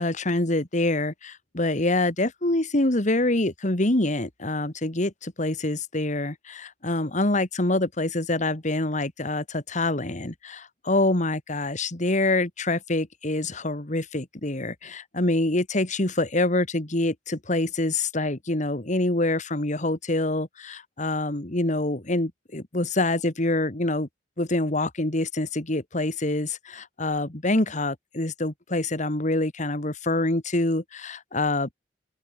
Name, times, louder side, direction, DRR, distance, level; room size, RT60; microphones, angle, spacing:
voice 1, 0.0-24.1 24.4-31.7, left 2 dB, 45° left, 2.2 m, -26 dB
open air
head